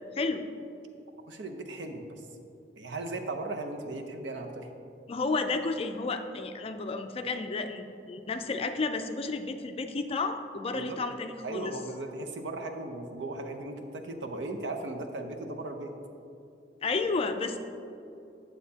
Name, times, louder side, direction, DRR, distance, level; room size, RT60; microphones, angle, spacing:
voice 1, 1.3-2.2 2.8-4.7 10.7-11.0 11.4-15.9, right 2 dB, 85° right, 4 dB, 0.7 m, -37 dB
voice 2, 5.1-11.8 16.8-17.6, left 3 dB, 30° left, 8 dB, 0.4 m, -32 dB
9.4 x 7.0 x 2.8 m, 2.6 s
head